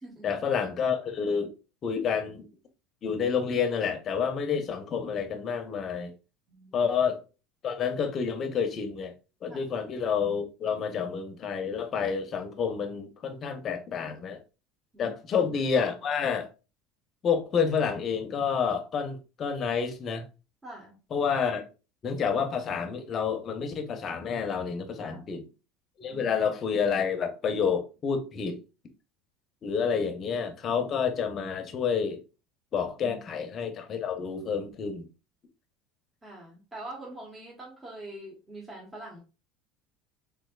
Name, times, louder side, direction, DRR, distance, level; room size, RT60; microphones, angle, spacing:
voice 1, 0.2-1.5 1.8-2.4 3.0-6.1 6.7-7.2 7.6-9.1 9.4-14.4 15.0-16.5 17.2-20.2 21.1-21.6 22.0-25.4 26.0-28.6 29.6-32.2 32.7-35.1, left 6 dB, 40° left, 0.7 m, -29 dB
voice 2, 6.5-6.9 9.5-9.6 14.9-15.1 20.6-21.0 25.0-25.5 26.0-26.3 33.0-33.2 36.2-39.2, right 2 dB, 20° right, 1.2 m, -44 dB
3.5 x 3.1 x 2.3 m
supercardioid pair, 105°, 0 cm